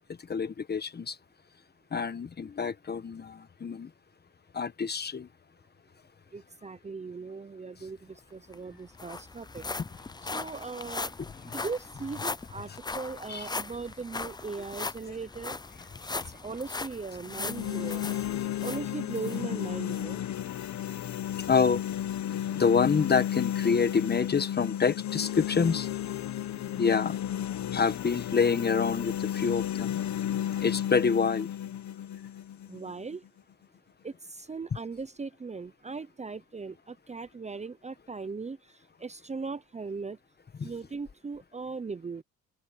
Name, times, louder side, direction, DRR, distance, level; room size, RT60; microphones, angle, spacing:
voice 1, 0.3-1.2 1.9-3.9 4.5-5.3 13.3-13.5 21.5-21.8 22.5-25.9 26.8-27.2 27.7-30.0 30.6-31.5 40.6-40.7, left 5 dB, 35° left, 1.3 m, -27 dB
voice 2, 6.3-9.6 10.3-11.1 11.5-15.6 16.4-18.0 18.6-20.2 32.7-33.2 34.0-38.6 39.0-40.2 40.6-42.2, right 4 dB, 20° right, 0.8 m, -38 dB
sound 1, 8.2-8.3 8.5-19.4 19.9-20.0 20.6-20.7, left 3 dB, 15° left, 0.6 m, -39 dB
sound 2, 17.2-33.3, left 11 dB, 65° left, 1.4 m, -33 dB
open air
cardioid pair, 90°, 30 cm